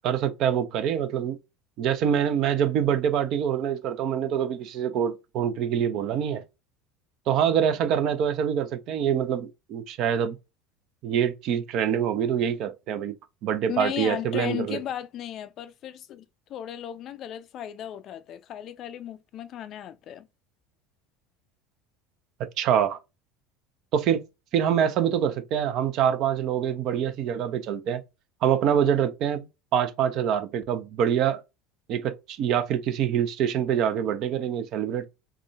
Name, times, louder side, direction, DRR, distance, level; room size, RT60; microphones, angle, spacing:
voice 1, 0.0-1.4 1.8-6.4 7.3-10.4 11.0-13.2 13.4-14.8 22.6-23.0 23.9-24.2 24.5-28.0 28.4-31.4 31.9-35.1, right 9 dB, 50° right, 0.5 m, -25 dB
voice 2, 13.7-16.2 16.5-20.3, left 11 dB, 45° left, 0.4 m, -35 dB
3.7 x 2.2 x 2.3 m
figure-of-eight pair, 70°, 0 cm